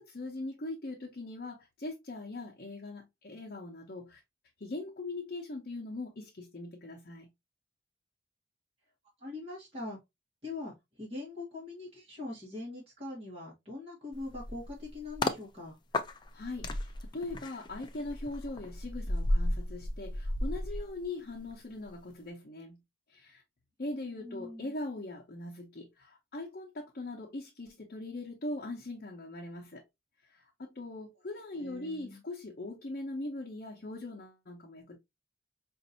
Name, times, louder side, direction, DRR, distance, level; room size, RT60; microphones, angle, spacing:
voice 1, 0.0-4.2 4.6-7.3 16.3-22.8 23.1-23.4 23.8-29.8 30.3-35.0, left 2 dB, 55° left, 0.8 m, -41 dB
voice 2, 9.2-10.0 10.4-15.8 23.9-24.7 31.5-32.2, left 2 dB, 35° right, 1.5 m, -42 dB
sound 1, 14.1-15.4 15.9-21.5 21.8-22.1, left 1 dB, 25° left, 0.4 m, -34 dB
5.1 x 2.6 x 2.7 m
head